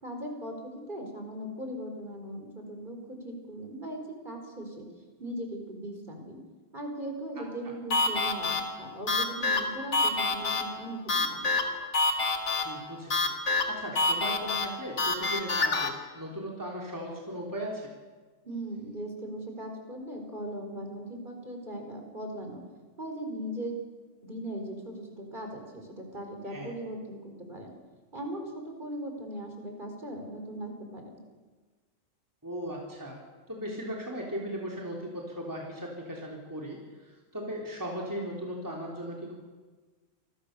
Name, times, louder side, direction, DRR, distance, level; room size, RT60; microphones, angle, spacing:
voice 1, 0.0-4.9 5.2-6.4 6.7-11.5 18.4-22.6 23.0-23.8 24.2-27.7 28.1-31.1, right 1 dB, 35° right, 3 dB, 4.9 m, -39 dB
sound 1, 7.9-15.9, left 3 dB, 85° left, 2.5 m, -28 dB
voice 2, 12.6-13.3 13.7-17.9 26.5-26.7 32.4-33.2 33.5-39.3, equal, 15° right, -2 dB, 3.6 m, -37 dB
28.5 x 21.5 x 6.9 m, 1.4 s
omnidirectional pair, 1.4 m